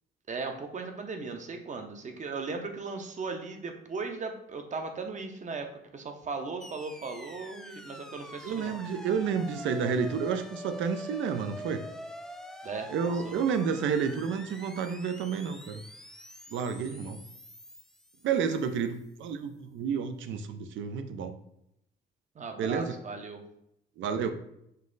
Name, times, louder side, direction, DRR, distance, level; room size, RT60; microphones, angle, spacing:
voice 1, 0.3-8.8 12.6-13.3 16.9-17.0 22.3-23.4, right 4 dB, 40° right, 5 dB, 0.7 m, -37 dB
sound 1, 6.6-18.8, equal, ahead, 0.3 m, -46 dB
voice 2, 8.4-11.8 12.9-15.8 16.5-17.2 18.2-21.3 22.6-23.0 24.0-24.3, right 6 dB, 75° right, 9 dB, 0.5 m, -30 dB
5.3 x 2.0 x 3.9 m, 0.79 s
cardioid pair, 90°, 20 cm